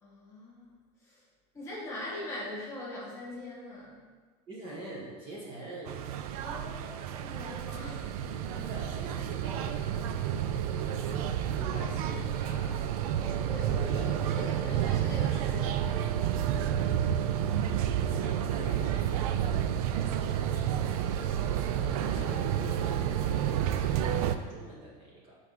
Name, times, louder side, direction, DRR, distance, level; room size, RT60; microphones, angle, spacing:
voice 1, 0.0-1.2 1.5-4.0 6.4-8.1 9.4-9.6 10.7-11.8 13.5-14.0 14.3-15.8 20.5-21.3, left 1 dB, 15° left, -6 dB, 1.7 m, -43 dB
voice 2, 4.5-6.0 8.5-10.5 11.5-12.9 13.7-14.1 18.1-19.7 22.1-25.4, right 2 dB, 30° right, -5 dB, 1.3 m, -44 dB
sound 1, 5.9-24.4, right 9 dB, 70° right, 0.5 m, -30 dB
5.9 x 3.9 x 5.9 m, 1.4 s
supercardioid pair, 170°, 20 cm